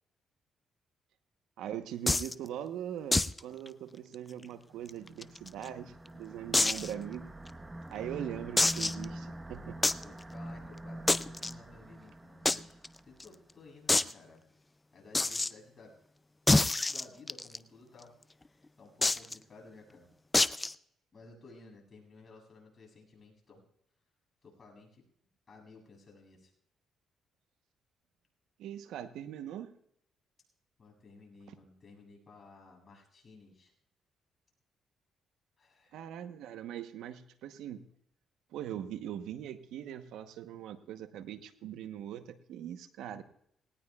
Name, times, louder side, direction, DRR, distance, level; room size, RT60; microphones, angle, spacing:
voice 1, 1.6-7.3 7.9-9.8 28.6-29.7 35.9-37.9 38.5-43.2, right 10 dB, 85° right, 10 dB, 0.9 m, -41 dB
sound 1, 2.1-2.3 3.1-3.4 3.7-3.8 4.1-4.2 4.9-5.7 6.5-6.9 7.5-7.6 8.6-9.1 9.8-10.0 11.1-11.5 12.5-12.6 12.8-12.9 13.2-13.3 13.9-14.1 15.1-15.5 16.5-17.6 19.0-19.3 20.3-20.7, left 2 dB, 15° left, 0.4 m, -26 dB
sound 2, 4.7-13.4, right 1 dB, 20° right, 1.1 m, -45 dB
voice 2, 10.0-14.4 14.9-15.9 16.9-18.1 18.8-20.1 21.1-23.6 24.4-25.0 25.5-26.5 30.8-33.7 35.6-36.0, left 3 dB, 35° left, 0 dB, 7.5 m, -55 dB
19.0 x 18.5 x 2.3 m, 0.71 s
cardioid pair, 90°, 0 cm